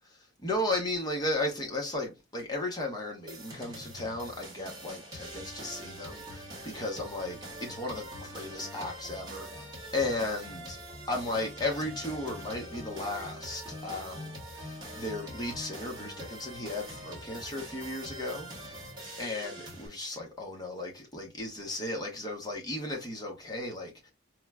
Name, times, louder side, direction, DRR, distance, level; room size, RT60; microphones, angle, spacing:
voice 1, 0.4-10.8 11.1-18.9 19.2-24.1, left 2 dB, 20° left, 0.7 m, -35 dB
sound 1, 3.3-19.9, equal, 20° right, 0.9 m, -43 dB
4.5 x 2.1 x 2.2 m
head